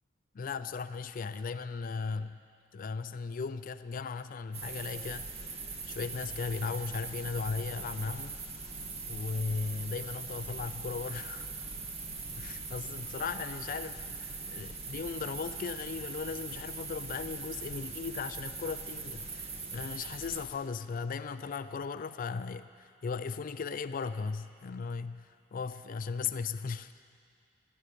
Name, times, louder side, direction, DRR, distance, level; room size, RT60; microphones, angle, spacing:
voice 1, 0.3-2.4 2.7-5.3 5.9-8.4 9.1-11.5 12.4-26.9, left 5 dB, 45° left, 12 dB, 0.4 m, -37 dB
sound 1, 4.5-20.4, right 4 dB, 35° right, 1.3 m, -41 dB
16.5 x 12.0 x 6.7 m, 2.2 s
head